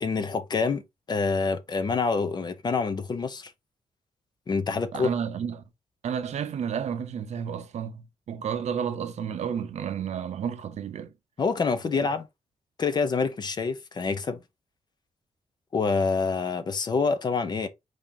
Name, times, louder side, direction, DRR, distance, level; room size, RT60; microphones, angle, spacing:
voice 1, 0.0-0.8 1.1-3.5 4.5-5.1 11.4-12.3 12.8-14.4 15.7-17.7, left 4 dB, 35° left, 0.7 m, -26 dB
voice 2, 4.9-5.6 6.0-11.1, right 8 dB, 70° right, 0.7 m, -31 dB
5.0 x 2.8 x 3.6 m
wide cardioid pair, 165°, 12 cm